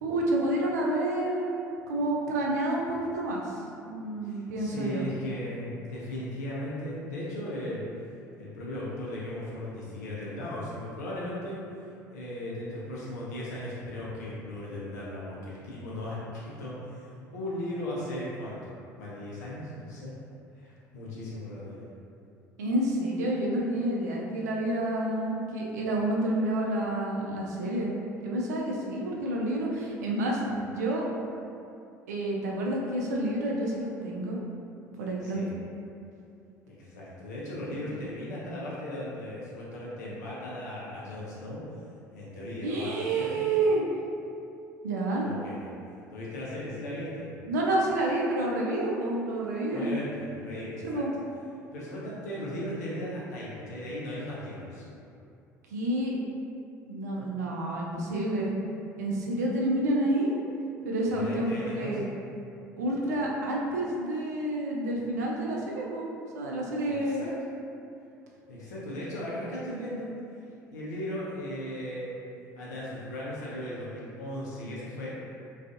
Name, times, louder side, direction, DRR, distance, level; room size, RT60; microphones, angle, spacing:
voice 1, 0.0-1.5 1.9-5.1 22.6-27.9 28.2-31.1 32.1-34.4 35.0-35.4 42.6-43.8 44.8-45.3 47.5-50.0 50.8-51.1 55.7-56.2 56.8-58.5 59.0-60.4 60.8-62.0 62.8-67.2, right 1 dB, 75° right, -3 dB, 0.4 m, -29 dB
voice 2, 4.2-7.8 8.4-11.6 12.1-20.1 20.5-21.9 35.2-35.5 36.7-41.6 42.1-43.4 45.2-45.7 46.1-47.3 49.7-51.0 51.7-54.8 61.1-62.0 66.8-67.3 68.5-70.1 70.7-72.2 72.5-75.1, left 1 dB, 75° left, -7 dB, 0.6 m, -37 dB
2.4 x 2.4 x 2.4 m, 2.6 s
figure-of-eight pair, 60°, 9 cm